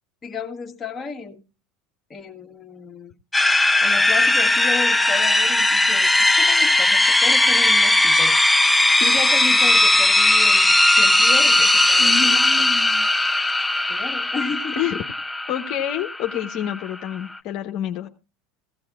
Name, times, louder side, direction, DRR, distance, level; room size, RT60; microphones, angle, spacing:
voice 1, 0.2-1.4 2.1-3.1 3.8-8.4 9.0-12.7 13.9-14.8, left 5 dB, 30° left, 1.8 m, -33 dB
sound 1, 3.3-17.4, left 2 dB, 10° left, 0.7 m, -18 dB
voice 2, 12.0-13.1 14.8-15.0 15.5-18.1, left 10 dB, 55° left, 1.1 m, -28 dB
16.0 x 16.0 x 2.5 m
hypercardioid pair, 90°, 0 cm